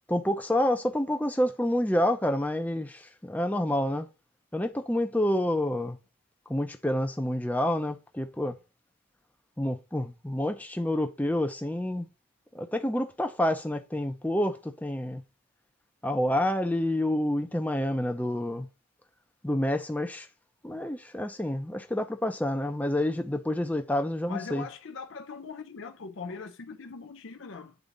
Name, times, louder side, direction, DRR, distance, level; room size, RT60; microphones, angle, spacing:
voice 1, 0.1-4.1 4.5-6.0 6.5-8.6 9.6-12.1 12.5-15.2 16.0-18.7 19.4-20.3 20.6-24.7, left 1 dB, 5° left, 0.6 m, -28 dB
voice 2, 24.3-27.8, left 5 dB, 60° left, 0.6 m, -40 dB
8.2 x 4.1 x 3.9 m
head